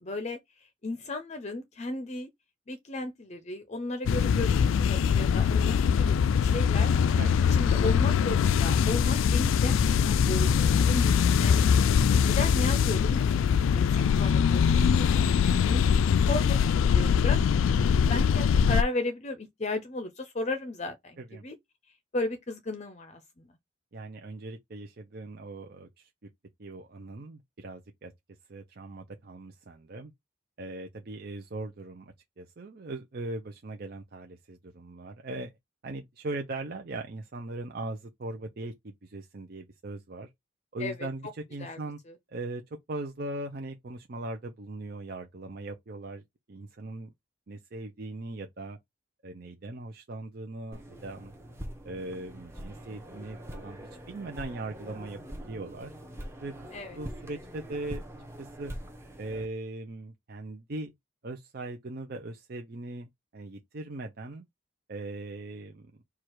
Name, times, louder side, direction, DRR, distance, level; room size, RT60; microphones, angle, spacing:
voice 1, 0.0-2.3 2.7-6.9 7.5-11.7 12.2-13.4 13.7-21.6 22.1-23.5 40.8-41.0 41.6-41.8 56.7-57.0, left 2 dB, 35° left, 0.6 m, -35 dB
sound 1, 4.1-18.8, left 7 dB, 85° left, 0.3 m, -23 dB
voice 2, 23.9-26.1 26.6-28.1 28.5-30.1 30.6-35.5 35.8-40.3 40.7-42.0 42.3-42.6 42.9-46.2 46.5-47.1 47.5-48.8 49.2-51.3 51.8-55.9 56.4-58.0 58.4-58.7 59.2-60.9 61.2-64.4 64.9-65.9, right 2 dB, 50° right, 0.6 m, -39 dB
sound 2, 50.7-59.5, equal, 15° right, 0.9 m, -43 dB
4.7 x 2.4 x 4.5 m
head